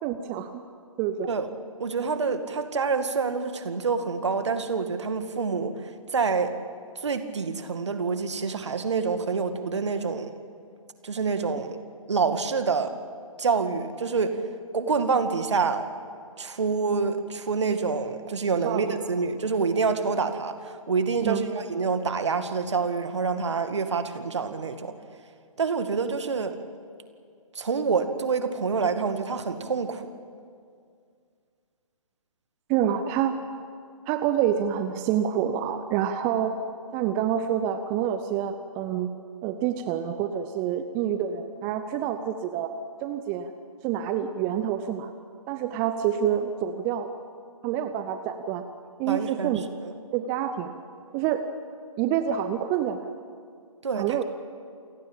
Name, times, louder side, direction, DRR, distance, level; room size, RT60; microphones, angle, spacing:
voice 1, 0.0-0.5 1.0-1.3 18.6-18.8 21.2-21.5 32.7-33.4 34.1-36.6 36.9-39.1 39.4-42.7 43.0-43.5 43.8-45.1 45.5-47.1 47.6-48.6 49.0-49.6 50.1-50.7 51.1-51.4 52.0-53.1 53.9-54.2, right 10 dB, 10° right, 9 dB, 0.5 m, -27 dB
voice 2, 1.8-6.6 7.0-10.3 11.0-11.8 12.1-12.9 13.4-14.5 14.7-15.9 16.4-24.9 25.6-26.6 27.5-30.1 49.1-49.9 53.8-54.2, right 5 dB, 55° right, 9 dB, 2.1 m, -27 dB
28.5 x 17.0 x 8.9 m, 2.3 s
figure-of-eight pair, 140°, 18 cm